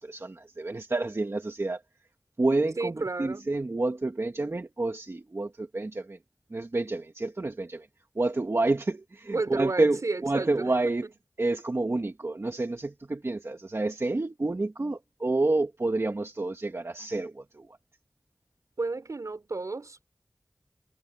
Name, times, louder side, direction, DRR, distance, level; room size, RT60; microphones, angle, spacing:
voice 1, 0.0-1.8 2.4-6.2 6.5-7.9 8.1-11.1 11.4-17.8, right 2 dB, 50° right, 1.6 m, -29 dB
voice 2, 2.8-3.6 9.3-10.9 18.8-20.1, right 3 dB, 75° right, 4.6 m, -32 dB
wide cardioid pair, 50°, 6 cm